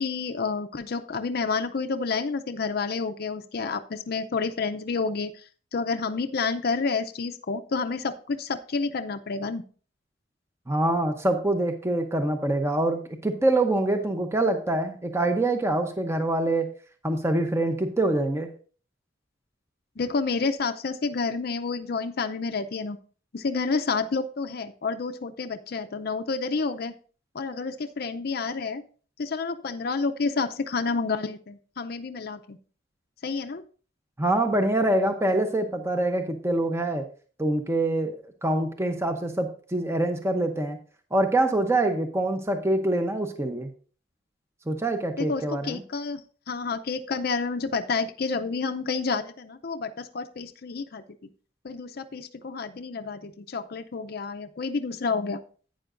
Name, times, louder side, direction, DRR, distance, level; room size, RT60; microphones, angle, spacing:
voice 1, 0.0-5.3 5.7-9.6 20.0-23.0 23.3-26.9 27.3-28.8 29.2-32.6 33.2-33.6 45.2-46.2 46.5-51.0 51.6-55.4, left 4 dB, 55° left, 7 dB, 0.5 m, -29 dB
voice 2, 10.7-16.7 17.0-18.5 34.2-37.0 37.4-40.8 41.1-43.7 44.7-45.8, right 1 dB, 15° right, 6 dB, 0.7 m, -25 dB
11.5 x 9.0 x 2.5 m, 0.41 s
head